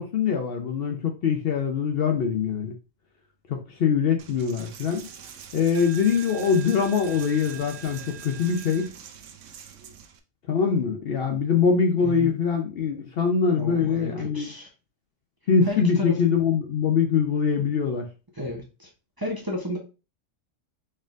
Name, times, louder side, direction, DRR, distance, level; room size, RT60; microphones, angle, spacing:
voice 1, 0.0-2.7 3.5-5.1 5.5-8.9 10.5-14.5 15.5-18.1, left 6 dB, 60° left, 3 dB, 0.7 m, -23 dB
Coin (dropping), 4.2-10.2, right 8 dB, 75° right, 0.9 m, -42 dB
voice 2, 12.0-12.3 13.6-14.7 15.7-16.2 18.4-18.9 19.2-19.8, equal, 20° right, -1 dB, 0.7 m, -32 dB
4.3 x 3.7 x 2.5 m, 0.31 s
omnidirectional pair, 1.3 m